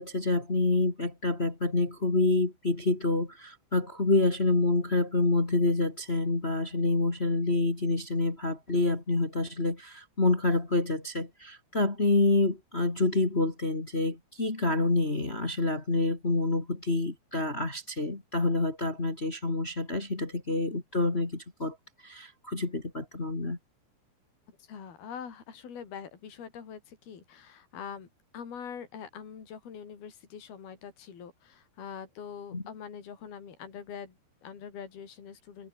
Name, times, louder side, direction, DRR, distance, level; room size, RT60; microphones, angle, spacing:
voice 1, 0.0-21.7 22.0-23.6 32.5-32.6, left 2 dB, 30° left, 1.2 m, -27 dB
voice 2, 24.6-28.1 28.3-35.7, left 7 dB, 55° left, 6.1 m, -43 dB
omnidirectional pair, 5.4 m